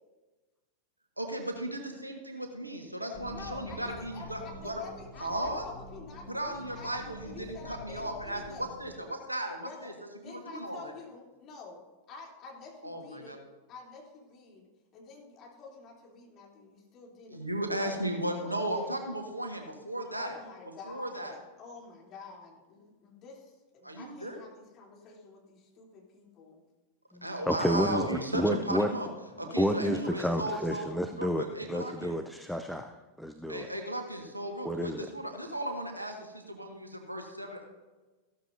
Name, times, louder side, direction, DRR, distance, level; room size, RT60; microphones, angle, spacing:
voice 1, 1.2-4.8 5.2-5.6 6.3-9.9 10.3-10.9 12.8-13.4 17.3-20.3 20.9-21.3 23.8-24.4 27.2-29.1 29.4-30.9 31.2-32.2 33.5-37.6, right 1 dB, 85° right, 3 dB, 1.7 m, -35 dB
sound 1, 3.1-9.0, right 1 dB, 20° right, 1.9 m, -48 dB
voice 2, 3.3-8.7 9.6-13.4 13.7-17.5 17.8-18.9 20.1-26.6, left 4 dB, 35° left, -2 dB, 3.3 m, -49 dB
voice 3, 27.1-28.9 29.6-33.7 34.6-35.1, equal, ahead, 7 dB, 0.6 m, -30 dB
14.5 x 12.5 x 2.7 m, 1.2 s
figure-of-eight pair, 90°, 0 cm